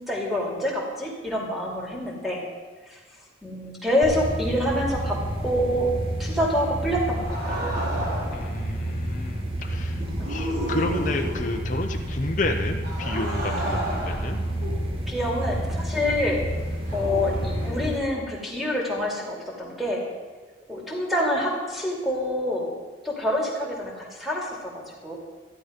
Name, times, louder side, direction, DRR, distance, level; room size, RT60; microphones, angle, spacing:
voice 1, 0.0-2.4 2.9-3.0 3.4-5.9 6.2-7.6 10.2-10.3 15.1-16.4 16.9-20.0 20.7-22.7 23.0-25.2, left 1 dB, ahead, -3 dB, 2.6 m, -27 dB
sound 1, 4.0-18.0, right 1 dB, 30° right, 1.5 m, -30 dB
sound 2, 7.1-8.5 10.0-11.7 12.8-15.5 16.9-17.9, right 1 dB, 55° right, 3.4 m, -32 dB
voice 2, 8.3-14.4, left 2 dB, 45° left, 3 dB, 0.7 m, -31 dB
13.0 x 10.5 x 5.1 m, 1.4 s
head